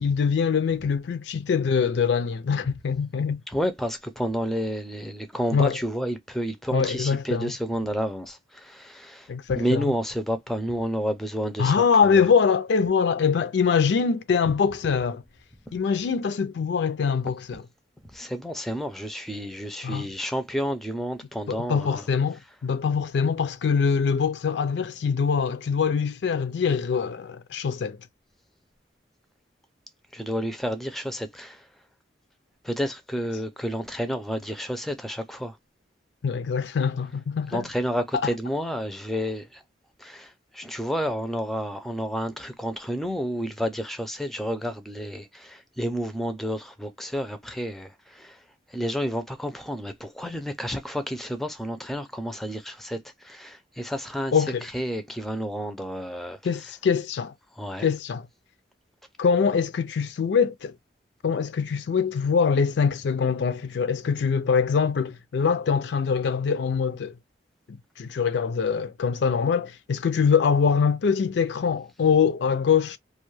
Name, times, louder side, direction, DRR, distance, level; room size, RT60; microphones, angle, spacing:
voice 1, 0.0-3.4 5.5-5.8 6.7-7.5 9.3-9.9 11.6-15.2 15.7-17.7 19.8-20.1 21.5-28.0 36.2-37.7 38.1-38.3 54.3-54.7 56.4-57.3 57.8-58.3 59.2-60.7 61.2-67.1 67.7-73.0, left 6 dB, 65° left, 0.4 m, -23 dB
voice 2, 3.5-9.3 9.6-11.7 18.1-22.0 30.1-31.6 32.6-35.5 37.5-39.4 40.0-40.3 40.5-47.9 48.2-48.3 48.7-53.0 53.3-54.3 54.7-56.4 57.6-57.9, equal, ahead, 0.4 m, -30 dB
2.5 x 2.3 x 3.1 m
head